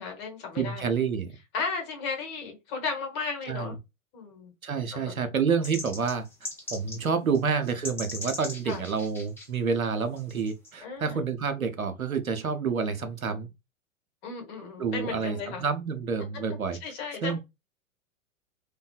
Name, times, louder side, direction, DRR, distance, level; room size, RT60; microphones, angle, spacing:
voice 1, 0.0-0.9 1.5-3.8 4.1-4.5 4.9-5.3 8.6-8.8 10.8-11.2 14.2-15.6 16.8-17.4, left 4 dB, 45° left, 1.2 m, -35 dB
voice 2, 0.6-1.3 3.5-3.7 4.6-6.3 6.7-13.5 14.8-16.8 17.2-17.4, right 5 dB, 90° right, 0.6 m, -28 dB
sound 1, 5.6-7.0 7.3-7.4 7.7-9.5 10.2-10.7, left 2 dB, 5° left, 0.5 m, -38 dB
2.6 x 2.2 x 2.3 m
figure-of-eight pair, 95°, 41 cm